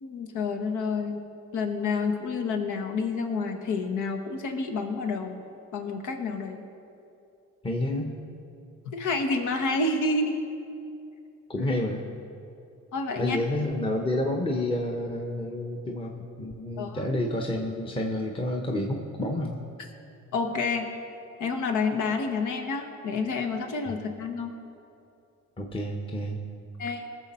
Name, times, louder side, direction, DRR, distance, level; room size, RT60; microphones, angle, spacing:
voice 1, 0.0-1.2 1.5-5.4 5.7-6.6 8.9-10.4 12.9-13.4 16.8-17.0 20.3-20.9 21.4-24.5 26.8-27.0, left 3 dB, 80° left, 5 dB, 1.3 m, -29 dB
voice 2, 7.6-8.2 11.5-12.0 13.1-19.6 25.6-26.5, left 1 dB, 20° left, 1 dB, 1.0 m, -29 dB
20.0 x 6.9 x 4.3 m, 2.7 s
cardioid pair, 90°, 30 cm